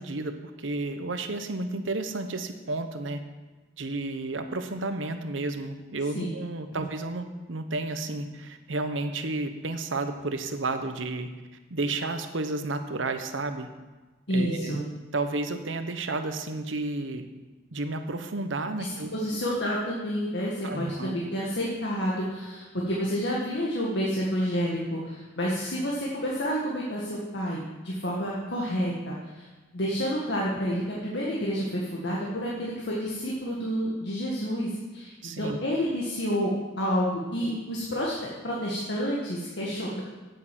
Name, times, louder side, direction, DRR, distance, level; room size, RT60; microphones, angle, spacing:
voice 1, 0.0-3.2 3.8-11.3 11.7-13.7 14.3-14.8 15.1-17.3 17.7-19.4 20.6-21.2 35.2-35.6, right 2 dB, 85° right, 8 dB, 1.0 m, -32 dB
voice 2, 14.3-14.8 19.1-29.5 29.7-36.5 36.8-38.1 38.4-40.0, equal, 65° left, -4 dB, 1.8 m, -29 dB
8.6 x 7.9 x 7.6 m, 1.2 s
head